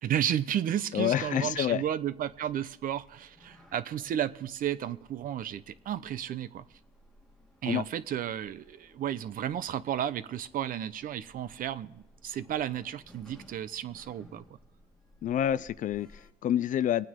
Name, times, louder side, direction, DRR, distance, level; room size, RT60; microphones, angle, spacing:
voice 1, 0.0-6.6 7.6-14.6, right 10 dB, 55° right, 0.7 m, -33 dB
voice 2, 0.9-1.8 7.6-7.8 15.2-17.1, left 10 dB, 50° left, 0.5 m, -28 dB
Sliding door, 1.1-16.3, equal, 5° left, 1.7 m, -59 dB
22.0 x 9.1 x 3.7 m
cardioid pair, 110°, 17 cm